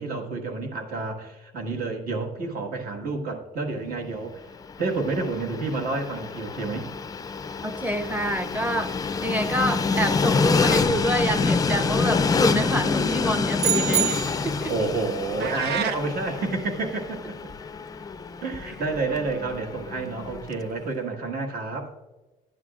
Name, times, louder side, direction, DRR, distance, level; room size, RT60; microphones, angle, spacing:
voice 1, 0.0-4.4 4.8-6.9 14.7-17.2 18.4-21.9, right 3 dB, 60° right, 3 dB, 1.7 m, -29 dB
Train, 4.6-20.7, left 4 dB, 20° left, 0.4 m, -27 dB
voice 2, 7.6-8.9 9.2-14.2 14.4-14.7, equal, 10° right, 9 dB, 0.7 m, -27 dB
sound 1, 13.6-14.7, right 10 dB, 40° right, 0.4 m, -26 dB
sound 2, 15.4-16.0, right 8 dB, 75° right, 0.7 m, -29 dB
12.5 x 9.4 x 2.4 m, 1.2 s
cardioid pair, 110°, 17 cm